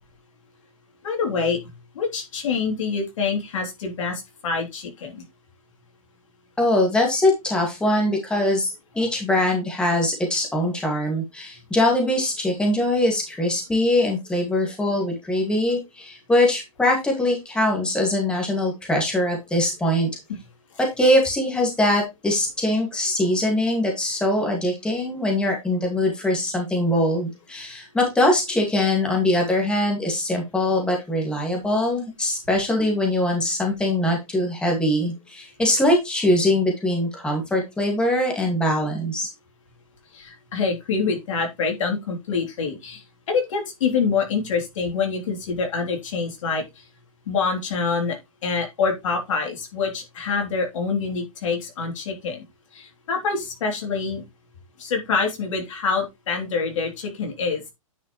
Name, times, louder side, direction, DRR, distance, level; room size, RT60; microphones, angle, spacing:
voice 1, 1.0-1.6 1.9-5.2 40.1-46.6 47.3-52.4 52.7-54.2 54.8-57.7, left 5 dB, 65° left, 3.3 m, -26 dB
voice 2, 6.6-20.1 21.0-39.3, left 1 dB, 5° left, 2.2 m, -22 dB
9.5 x 5.7 x 3.2 m
hypercardioid pair, 150°, 18 cm